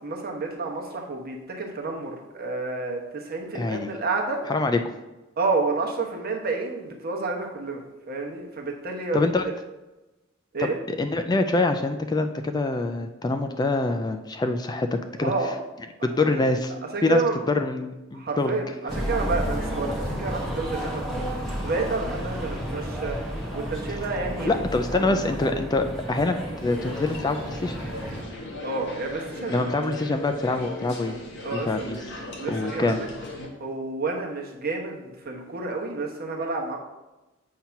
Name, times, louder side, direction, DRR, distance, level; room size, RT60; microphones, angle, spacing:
voice 1, 0.0-4.4 5.4-9.3 10.5-10.8 15.2-15.5 16.2-16.4 16.9-17.4 18.1-21.3 21.6-24.5 25.0-25.2 28.6-29.7 31.4-31.7 32.4-33.1 33.6-36.8, right 3 dB, 50° right, 1 dB, 1.1 m, -30 dB
voice 2, 3.5-3.9 4.5-4.8 9.1-9.5 10.6-15.3 16.0-16.7 17.0-18.6 24.5-26.4 26.6-27.8 29.5-31.2 31.5-32.0 32.5-33.0, left 2 dB, 20° left, 6 dB, 0.3 m, -25 dB
sound 1, 18.9-28.2, equal, ahead, 1.1 m, -32 dB
sound 2, 26.6-33.5, left 1 dB, 60° left, 1.4 m, -38 dB
7.5 x 2.8 x 5.7 m, 1.0 s
head